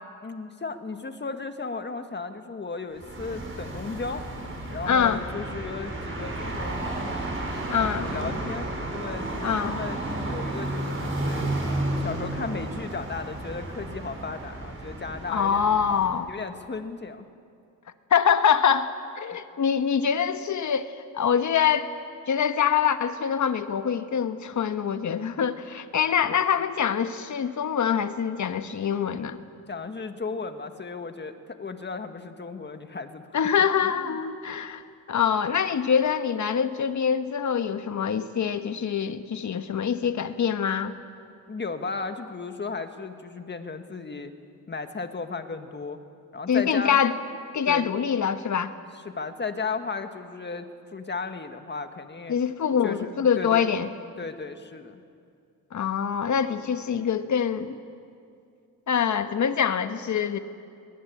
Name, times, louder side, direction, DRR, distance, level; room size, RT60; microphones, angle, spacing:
voice 1, 0.2-4.3 4.7-7.2 7.5-11.7 12.0-15.7 16.3-17.3 29.7-33.3 33.8-34.2 41.5-44.3 44.7-46.0 46.3-47.0 47.7-47.9 49.1-52.4 52.8-53.1 53.4-53.7 54.2-55.0, left 4 dB, 30° left, 7 dB, 1.7 m, -35 dB
sound 1, 2.9-16.2, right 1 dB, 35° right, 7.0 m, -32 dB
voice 2, 4.9-5.2 7.7-8.1 9.4-9.7 15.3-16.3 18.1-21.9 22.3-29.4 33.3-34.8 35.1-40.9 46.5-47.1 47.5-48.7 52.3-53.9 55.7-57.8 58.9-60.4, left 7 dB, 50° left, 10 dB, 1.4 m, -24 dB
21.5 x 20.0 x 8.6 m, 2.4 s
cardioid pair, 90°, 36 cm